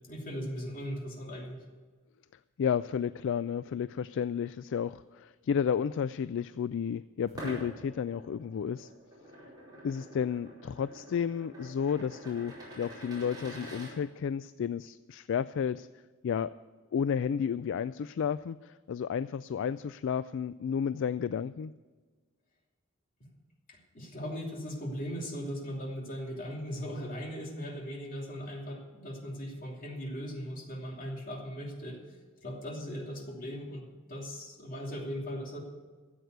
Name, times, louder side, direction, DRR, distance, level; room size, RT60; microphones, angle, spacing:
voice 1, 0.1-1.6 23.7-32.0 32.4-35.6, equal, 40° left, 0 dB, 2.9 m, -38 dB
voice 2, 2.6-8.9 9.8-15.9 16.2-16.5 16.9-21.7, left 7 dB, 60° left, 15 dB, 0.3 m, -32 dB
sound 1, 7.3-13.9, right 1 dB, 20° right, 4.6 m, -46 dB
14.0 x 8.2 x 7.8 m, 1.4 s
head